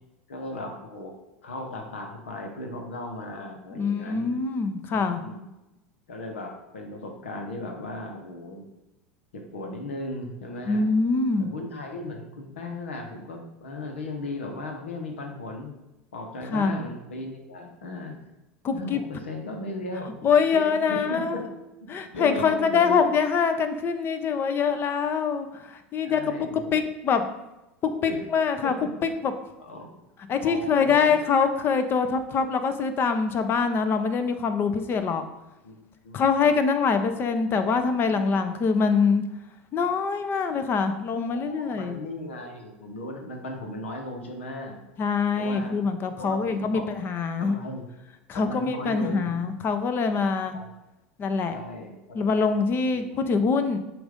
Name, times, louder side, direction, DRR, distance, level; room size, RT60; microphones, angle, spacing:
voice 1, 0.3-1.1 1.4-4.3 4.9-5.4 6.1-8.7 9.3-10.9 11.4-15.7 16.1-18.1 18.7-20.2 20.5-21.4 21.8-23.0 26.0-26.8 27.8-28.3 28.6-29.1 29.6-30.0 30.4-31.1 35.6-36.5 41.2-44.8 45.3-45.8 46.2-46.8 47.4-47.8 48.3-49.4 50.5-50.7 51.5-52.2 52.9-53.3, left 2 dB, 80° left, 3 dB, 1.1 m, -37 dB
voice 2, 3.7-5.2 10.7-11.5 16.5-16.8 18.6-19.0 20.2-21.5 21.9-27.3 28.0-28.7 29.0-29.3 30.3-35.2 36.1-39.2 39.7-42.0 45.0-47.6 48.3-50.5 51.2-51.6 52.1-53.8, left 5 dB, 35° left, 9 dB, 0.7 m, -24 dB
7.8 x 2.6 x 5.1 m, 0.97 s
hypercardioid pair, 85°, 6 cm